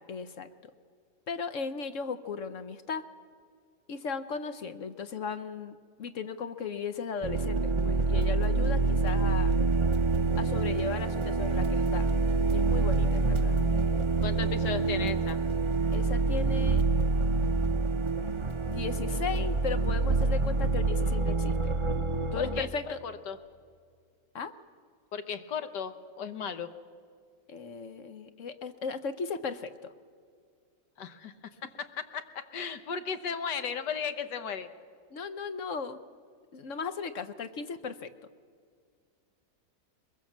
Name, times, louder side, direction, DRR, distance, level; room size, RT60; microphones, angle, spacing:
voice 1, 0.1-0.5 1.3-3.0 3.9-9.6 10.4-12.1 12.5-13.5 15.9-16.8 18.7-21.7 22.3-23.0 24.3-24.5 27.5-29.9 35.1-36.0 36.5-38.1, left 5 dB, 55° left, 11 dB, 1.1 m, -36 dB
sound 1, 7.2-22.6, right 3 dB, 25° right, 0.6 m, -26 dB
voice 2, 14.2-15.4 22.4-23.4 25.1-26.7 31.0-31.3 31.6-34.7, left 6 dB, 80° left, 9 dB, 1.8 m, -36 dB
22.0 x 22.0 x 7.3 m, 2.1 s
omnidirectional pair, 1.8 m